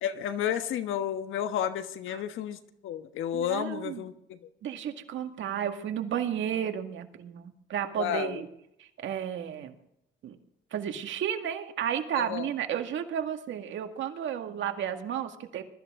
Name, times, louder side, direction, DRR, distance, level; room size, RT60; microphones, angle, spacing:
voice 1, 0.0-4.4 8.0-8.4 12.1-12.5, left 9 dB, 85° left, 10 dB, 1.3 m, -32 dB
voice 2, 3.3-4.0 4.6-8.5 8.8-9.8 10.2-10.4 10.7-15.6, right 9 dB, 75° right, 6 dB, 2.0 m, -33 dB
21.5 x 13.5 x 3.7 m, 0.75 s
cardioid pair, 90°, 20 cm